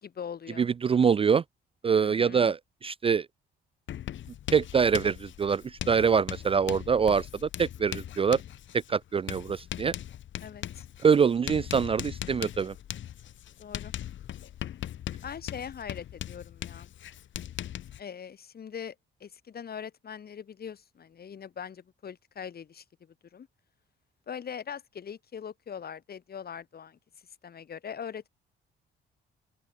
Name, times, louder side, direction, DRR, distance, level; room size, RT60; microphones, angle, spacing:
voice 1, 0.0-0.7 2.0-2.5 10.4-10.9 13.6-13.9 15.2-16.9 18.0-19.0 19.2-23.5 24.3-27.0 27.4-28.3, left 7 dB, 50° left, 5.1 m, -41 dB
voice 2, 0.6-1.4 1.8-3.3 4.5-8.4 8.7-10.0 11.0-12.7, right 6 dB, 30° right, 0.4 m, -25 dB
Writing, 3.9-18.0, left 11 dB, 70° left, 3.8 m, -39 dB
open air
cardioid pair, 90°, 20 cm